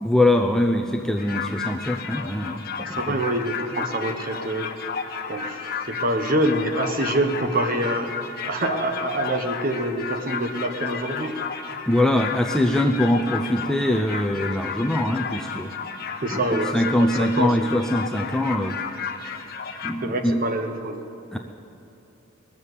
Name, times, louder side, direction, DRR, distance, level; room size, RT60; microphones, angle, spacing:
voice 1, 0.0-3.2 11.9-15.7 16.3-16.4 16.7-18.8 19.8-20.4 21.3-21.4, left 1 dB, 5° left, 3 dB, 0.4 m, -22 dB
sound 1, 1.2-19.9, left 6 dB, 45° left, 1.0 m, -33 dB
voice 2, 2.9-4.7 5.3-8.1 8.4-11.4 16.2-17.7 20.0-21.0, right 1 dB, 40° right, 5 dB, 1.1 m, -26 dB
20.5 x 7.2 x 8.2 m, 2.9 s
head